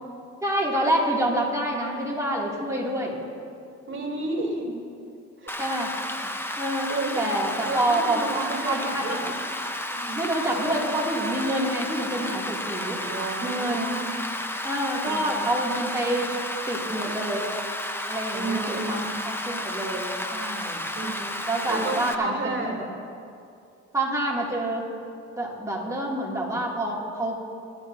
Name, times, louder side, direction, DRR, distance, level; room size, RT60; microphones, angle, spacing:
voice 1, 0.4-3.2 5.6-5.9 6.6-6.9 7.2-9.3 10.2-13.0 13.4-14.0 14.6-16.3 16.7-17.5 18.1-20.8 21.5-22.7 23.9-24.8 25.4-27.4, right 1 dB, 10° right, -4 dB, 2.5 m, -27 dB
voice 2, 3.9-4.8 5.4-5.6 6.9-7.3 7.6-9.3 9.9-10.9 13.0-14.2 15.0-15.5 18.3-19.2 20.9-22.8, right 3 dB, 40° right, 0 dB, 2.8 m, -32 dB
Rain, 5.5-22.1, left 1 dB, 5° left, 0.8 m, -32 dB
19.5 x 11.5 x 2.7 m, 2.5 s
cardioid pair, 90°, 30 cm